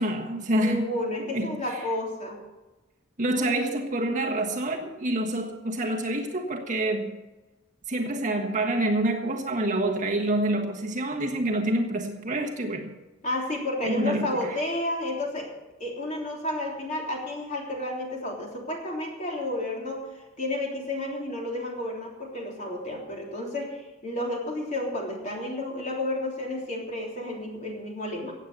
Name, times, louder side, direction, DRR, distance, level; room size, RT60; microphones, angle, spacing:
voice 1, 0.0-1.0 1.3-1.9 3.2-7.2 7.9-12.9 13.8-14.6, right 1 dB, 35° right, 1 dB, 1.4 m, -27 dB
voice 2, 0.6-2.4 13.2-15.5 15.8-20.1 20.4-28.3, left 1 dB, 35° left, -1 dB, 3.4 m, -31 dB
16.5 x 8.3 x 6.8 m, 1.1 s
head